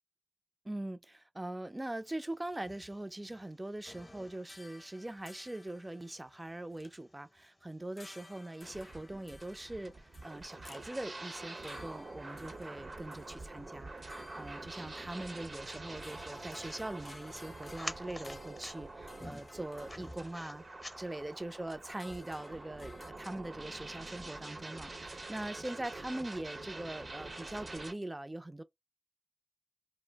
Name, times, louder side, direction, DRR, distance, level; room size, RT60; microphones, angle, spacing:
voice 1, 0.6-20.6 21.0-28.6, right 1 dB, 30° right, 0.4 m, -42 dB
sound 1, 2.0-21.4, left 1 dB, 30° left, 0.7 m, -53 dB
sound 2, 3.8-7.4 7.9-21.5 21.9-23.1, left 2 dB, 55° left, 0.4 m, -58 dB
sound 3, 8.6-27.9, right 2 dB, 75° right, 0.8 m, -46 dB
2.5 x 2.0 x 3.4 m
cardioid pair, 45°, 0 cm